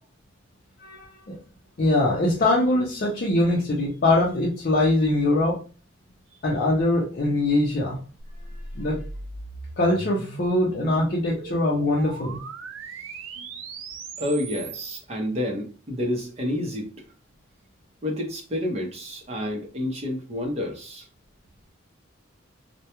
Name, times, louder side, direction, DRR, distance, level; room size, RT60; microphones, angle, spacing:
voice 1, 0.8-1.4 1.8-5.6 6.4-8.0 8.7-9.0 9.8-12.4, left 1 dB, 45° left, 0.5 m, -22 dB
sound 1, 8.2-15.0, right 4 dB, 75° right, 0.4 m, -39 dB
voice 2, 14.2-16.9 18.0-21.1, left 1 dB, 30° right, 0.7 m, -29 dB
2.3 x 2.1 x 2.9 m
head